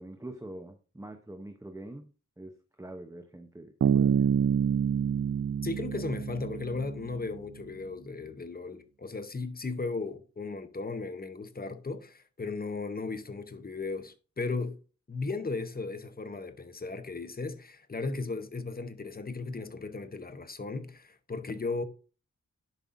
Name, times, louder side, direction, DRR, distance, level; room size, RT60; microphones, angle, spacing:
voice 1, 0.0-2.1 2.4-4.3, right 1 dB, 10° right, 0.7 m, -44 dB
Bass guitar, 3.8-7.3, right 8 dB, 55° right, 0.4 m, -27 dB
voice 2, 5.6-14.8 15.1-21.8, left 3 dB, 30° left, 0.7 m, -36 dB
11.0 x 5.4 x 2.5 m
wide cardioid pair, 100°, 29 cm